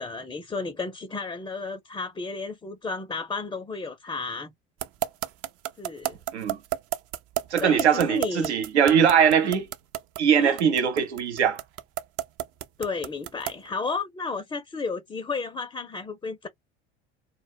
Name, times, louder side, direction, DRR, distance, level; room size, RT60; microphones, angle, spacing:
voice 1, 0.0-4.5 5.8-6.2 7.6-8.5 10.4-10.6 12.8-16.5, left 4 dB, 15° left, 0.4 m, -33 dB
sound 1, 4.8-13.7, right 14 dB, 50° right, 0.4 m, -30 dB
voice 2, 7.5-9.7 10.2-11.6, right 7 dB, 90° right, 0.6 m, -21 dB
2.1 x 2.0 x 3.5 m
hypercardioid pair, 70°, 32 cm